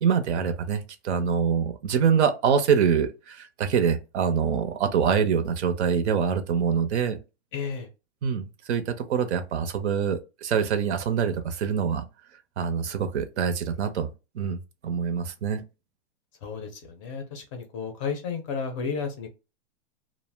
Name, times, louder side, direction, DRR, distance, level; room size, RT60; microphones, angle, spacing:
voice 1, 0.0-7.2 8.2-12.0 12.6-14.1 14.4-15.6, right 7 dB, 75° right, 0.7 m, -25 dB
voice 2, 7.5-7.9 16.4-19.3, left 5 dB, 30° left, 0.4 m, -32 dB
2.4 x 2.0 x 3.3 m
supercardioid pair, 160°, 34 cm